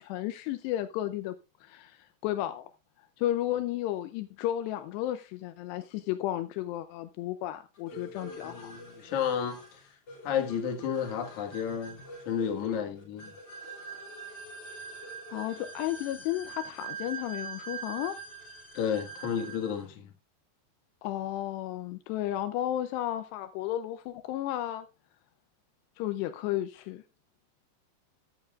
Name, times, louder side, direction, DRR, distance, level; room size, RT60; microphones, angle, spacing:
voice 1, 0.0-1.3 1.6-2.7 3.2-8.7 12.6-12.7 15.3-18.2 21.0-24.9 26.0-27.0, left 13 dB, 80° left, 2.7 m, -33 dB
voice 2, 7.9-9.8 10.2-12.0 12.3-13.3 18.7-20.1, left 8 dB, 55° left, 2.5 m, -32 dB
sound 1, 7.9-19.8, right 4 dB, 30° left, 2.9 m, -44 dB
13.5 x 9.4 x 2.4 m
omnidirectional pair, 5.0 m